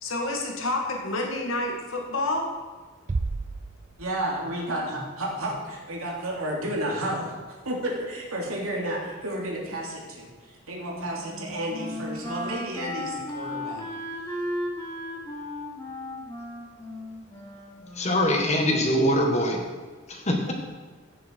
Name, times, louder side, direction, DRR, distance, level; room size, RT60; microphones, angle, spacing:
voice 1, 0.0-2.5, left 2 dB, 75° left, 1 dB, 1.9 m, -28 dB
Bass drum, 3.1-4.5, right 3 dB, 35° right, 0.4 m, -32 dB
voice 2, 4.0-13.8, right 1 dB, 90° right, -2 dB, 2.8 m, -31 dB
Wind instrument woodwind instrument, 10.7-18.5, left 1 dB, 15° left, 2.7 m, -36 dB
voice 3, 17.9-19.6 20.1-20.5, equal, 30° left, 1 dB, 1.8 m, -23 dB
16.0 x 6.8 x 4.7 m, 1.4 s
head